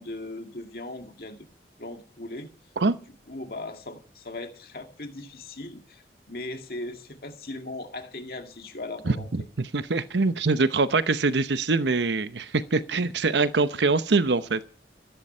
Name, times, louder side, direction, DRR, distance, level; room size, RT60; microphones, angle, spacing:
voice 1, 0.0-1.5 1.8-2.5 3.3-9.5, left 2 dB, 55° left, 2.1 m, -38 dB
voice 2, 9.1-14.7, right 3 dB, 85° right, 0.8 m, -24 dB
15.0 x 12.5 x 5.6 m
head